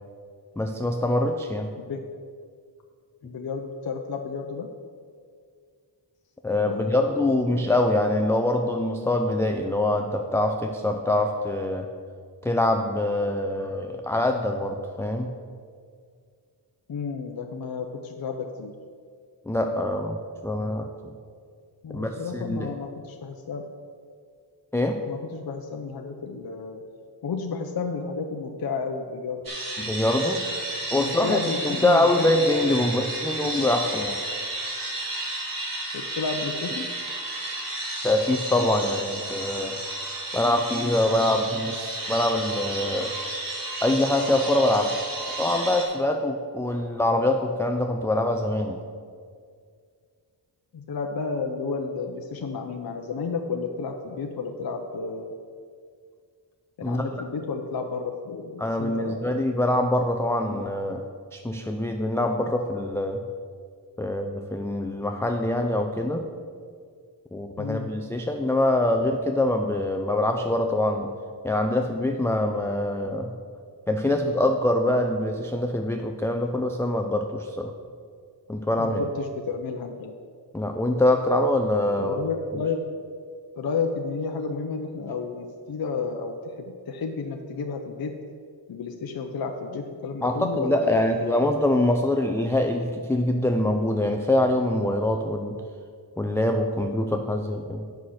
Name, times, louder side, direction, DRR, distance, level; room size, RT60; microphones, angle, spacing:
voice 1, 0.6-1.7 6.4-11.9 12.4-15.3 19.5-20.9 21.9-22.7 24.7-25.0 29.8-30.4 30.9-34.2 38.0-39.8 40.3-43.1 43.8-45.0 45.4-48.8 56.8-57.1 58.6-61.0 61.3-63.2 64.0-66.2 67.3-71.1 71.4-73.3 73.9-77.7 78.5-79.0 80.5-82.2 90.2-95.6 96.2-97.9, left 1 dB, 5° left, 3 dB, 0.4 m, -24 dB
voice 2, 3.2-4.7 6.6-7.7 16.9-18.7 21.8-23.6 25.1-26.8 27.2-29.4 29.8-30.0 31.0-32.3 35.9-36.9 50.7-55.3 56.8-59.4 67.6-67.9 78.8-80.2 82.0-82.8 83.6-88.1 88.7-91.5, left 5 dB, 55° left, 3 dB, 0.7 m, -32 dB
sound 1, 29.5-45.9, right 2 dB, 50° right, 2.1 m, -32 dB
8.3 x 5.7 x 6.4 m, 2.1 s
wide cardioid pair, 125°, 43 cm